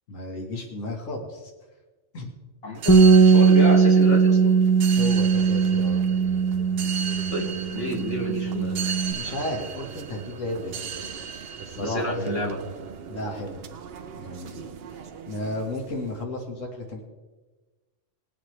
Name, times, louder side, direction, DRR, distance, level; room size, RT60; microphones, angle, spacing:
voice 1, 0.1-1.5 2.1-2.3 5.0-6.0 9.1-10.8 11.6-12.3 13.1-13.7 14.2-14.6 15.3-17.0, left 1 dB, 90° left, 1 dB, 1.9 m, -33 dB
voice 2, 2.6-4.6 7.3-8.8 11.8-12.6, equal, 50° left, -2 dB, 2.5 m, -29 dB
sound 1, 2.7-16.2, right 6 dB, 55° right, 0.9 m, -37 dB
Bass guitar, 2.9-9.1, right 5 dB, 20° left, 0.4 m, -19 dB
20.5 x 8.2 x 3.2 m, 1.2 s
omnidirectional pair, 1.3 m